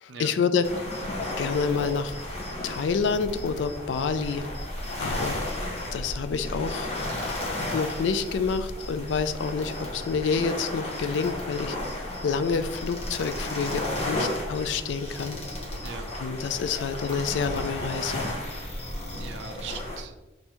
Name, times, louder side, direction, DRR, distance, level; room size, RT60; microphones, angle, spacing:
voice 1, 0.0-0.7 1.4-2.1 2.6-4.5 5.0-5.4 5.9-6.9 7.7-15.4 16.2-18.2, left 5 dB, 80° left, 12 dB, 0.3 m, -28 dB
sound 1, 0.6-20.0, left 1 dB, 35° left, 0.8 m, -33 dB
voice 2, 15.8-16.2 16.7-16.9 19.1-20.1, right 6 dB, 85° right, 8 dB, 0.5 m, -41 dB
5.3 x 2.7 x 3.0 m, 1.0 s
head